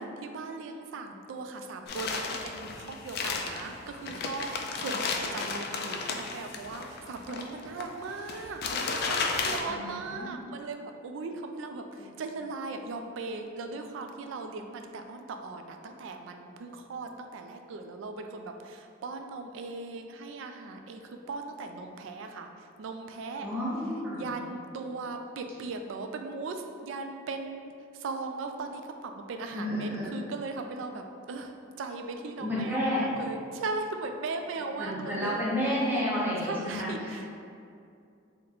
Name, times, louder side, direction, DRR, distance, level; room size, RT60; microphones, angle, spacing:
voice 1, 0.2-4.5 4.8-23.5 24.1-35.4 36.4-37.3, right 3 dB, 70° right, 5 dB, 0.3 m, -38 dB
sound 1, 1.9-9.6, left 4 dB, 50° left, 0.3 m, -33 dB
voice 2, 9.7-10.4 12.0-12.1 23.4-24.3 29.5-30.1 32.4-33.2 34.8-37.3, left 1 dB, 10° right, -8 dB, 0.6 m, -31 dB
3.8 x 2.1 x 4.3 m, 2.5 s
head